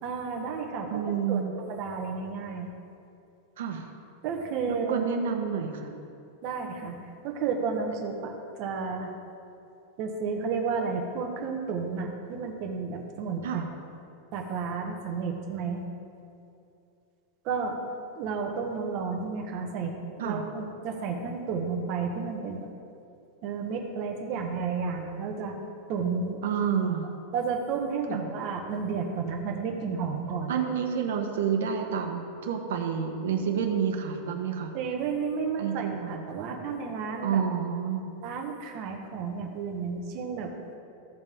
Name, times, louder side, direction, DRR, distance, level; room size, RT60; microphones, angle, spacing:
voice 1, 0.0-1.0 1.3-2.7 4.2-5.0 6.4-7.0 7.2-9.1 10.0-13.6 14.3-15.8 17.4-17.8 18.1-22.7 23.4-25.5 25.9-26.4 27.3-30.5 34.7-37.4 38.2-40.5, right 5 dB, 35° right, 2 dB, 1.1 m, -32 dB
voice 2, 0.9-1.5 3.6-3.8 4.7-5.9 13.4-13.6 20.2-20.4 26.4-27.1 28.1-28.2 30.5-34.7 35.6-36.2 37.2-38.1, right 7 dB, 75° right, 3 dB, 1.3 m, -29 dB
15.5 x 5.6 x 3.6 m, 2.6 s
supercardioid pair, 175°, 0 cm